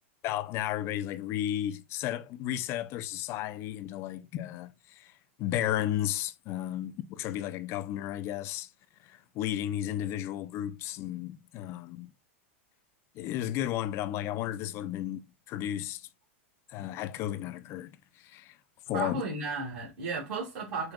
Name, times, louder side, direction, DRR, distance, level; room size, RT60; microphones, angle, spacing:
voice 1, 0.2-5.1 5.4-8.7 9.0-12.1 13.2-16.1 16.7-18.6 18.9-19.2, left 12 dB, 40° left, 0.4 m, -33 dB
voice 2, 18.9-20.9, right 3 dB, 55° right, 2.2 m, -34 dB
5.1 x 2.7 x 2.3 m
hypercardioid pair, 110°, 7 cm